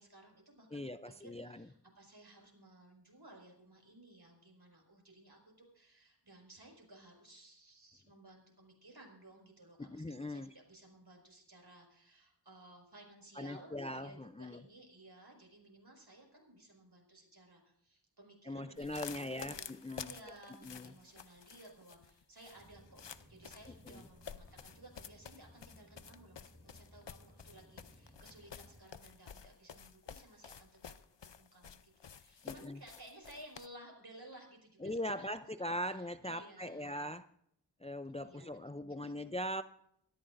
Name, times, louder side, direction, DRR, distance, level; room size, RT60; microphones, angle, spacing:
voice 1, 0.0-19.8 20.0-30.9 31.4-35.4 35.8-37.1 38.2-39.3, right 1 dB, 60° right, 1 dB, 5.4 m, -58 dB
voice 2, 0.7-1.7 9.8-10.5 13.4-14.6 18.4-20.1 20.6-20.9 23.9-24.0 32.4-32.8 34.8-37.3 37.8-39.6, left 1 dB, 15° left, 11 dB, 0.4 m, -41 dB
sound 1, 18.8-33.7, left 7 dB, 75° left, 0.7 m, -51 dB
sound 2, 22.5-28.8, equal, 5° right, 4.8 m, -61 dB
23.5 x 14.0 x 2.6 m, 0.73 s
wide cardioid pair, 45°, 44 cm